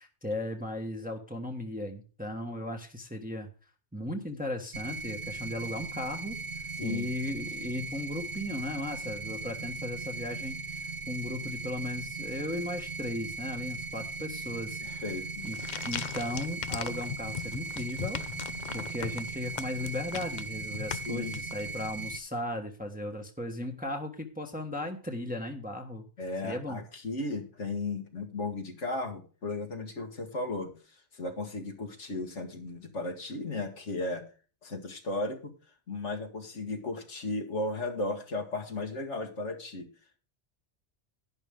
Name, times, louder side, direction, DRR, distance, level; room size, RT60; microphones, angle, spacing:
voice 1, 0.0-3.5 3.9-6.4 6.8-14.8 15.4-15.6 15.8-18.2 18.7-26.1 26.4-26.8, left 1 dB, 5° right, 3 dB, 1.2 m, -36 dB
sound 1, 4.7-22.2, right 4 dB, 45° right, 0.9 m, -38 dB
voice 2, 6.8-7.1 14.8-15.5 20.9-21.4 26.2-34.2 34.6-35.5 35.9-39.9, left 2 dB, 80° left, 3 dB, 2.0 m, -35 dB
sound 2, 15.4-21.9, left 8 dB, 50° left, 0.6 m, -39 dB
11.0 x 10.0 x 3.7 m, 0.37 s
omnidirectional pair, 1.2 m